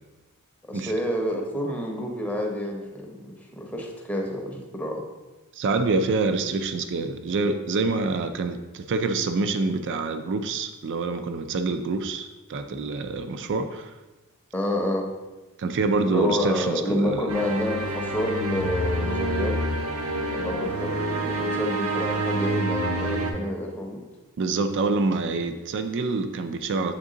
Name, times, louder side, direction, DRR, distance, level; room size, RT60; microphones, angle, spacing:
voice 1, 0.7-5.0 14.5-15.1 16.1-19.6 20.3-24.0, left 1 dB, 5° left, 0 dB, 0.7 m, -28 dB
voice 2, 5.6-13.9 15.6-17.3 24.4-26.9, right 3 dB, 55° right, 9 dB, 0.4 m, -26 dB
sound 1, 17.3-23.3, right 1 dB, 75° right, 0.8 m, -27 dB
7.3 x 3.6 x 3.8 m, 1.1 s
head